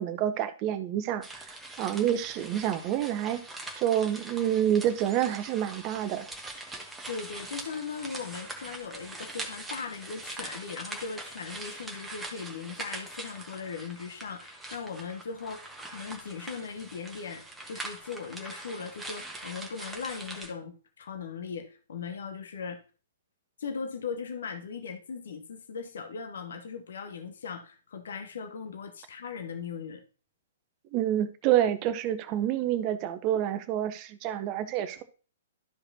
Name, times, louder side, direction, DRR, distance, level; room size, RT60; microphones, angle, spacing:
voice 1, 0.0-1.4 1.8-3.4 3.8-6.3 30.9-35.0, right 11 dB, 30° right, 12 dB, 0.7 m, -28 dB
sound 1, 1.2-20.5, right 2 dB, 5° right, 1.2 m, -42 dB
voice 2, 7.1-17.4 17.7-22.8 23.6-30.0, left 5 dB, 60° left, 6 dB, 0.9 m, -39 dB
12.5 x 4.9 x 2.8 m, 0.37 s
figure-of-eight pair, 115°, 0 cm